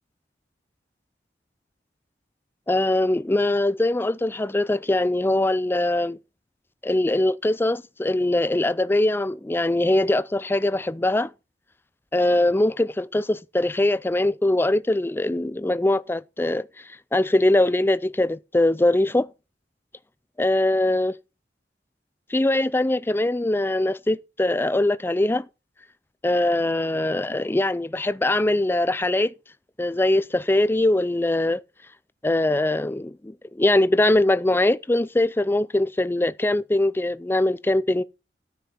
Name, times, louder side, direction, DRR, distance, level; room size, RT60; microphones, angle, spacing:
voice 1, 2.7-6.2 6.8-11.3 12.1-16.7 17.1-19.3 20.4-21.1 22.3-25.5 26.2-29.3 29.8-31.6 32.2-38.0, left 1 dB, 15° left, 0.4 m, -22 dB
13.0 x 5.9 x 4.2 m
head